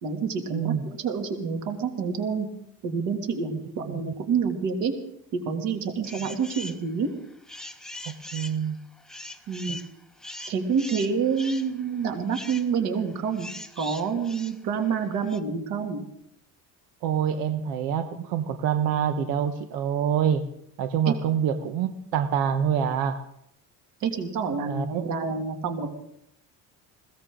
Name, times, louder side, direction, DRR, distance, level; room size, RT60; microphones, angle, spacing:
voice 1, 0.0-2.5 2.8-4.9 5.4-7.1 9.5-9.8 10.5-16.0 21.1-21.2 24.0-25.9, right 6 dB, 60° right, 4 dB, 2.7 m, -28 dB
voice 2, 0.5-0.8 3.8-4.1 8.3-8.8 9.7-9.8 17.0-20.4 20.8-23.2 24.7-25.1, right 8 dB, 85° right, 7 dB, 1.2 m, -26 dB
sound 1, 6.0-6.8 7.2-15.4, left 1 dB, ahead, 0.7 m, -41 dB
21.0 x 17.5 x 3.9 m, 0.73 s
cardioid pair, 180°, 34 cm